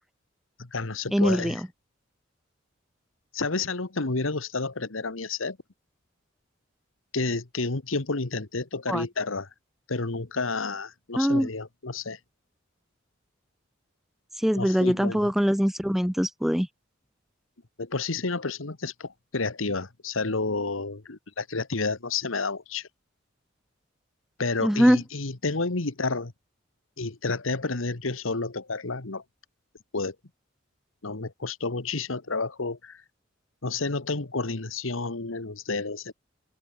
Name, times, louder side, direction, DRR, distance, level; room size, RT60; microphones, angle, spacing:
voice 1, 0.6-1.6 3.3-5.6 7.1-9.5 9.9-12.2 14.5-15.3 17.8-22.9 24.4-26.3 27.0-29.2 29.9-30.1 31.0-33.0 33.6-36.1, left 3 dB, 90° left, 1.5 m, -30 dB
voice 2, 1.1-1.6 8.9-9.0 11.2-11.5 14.4-16.7 24.6-25.0, equal, ahead, 0.3 m, -22 dB
open air
head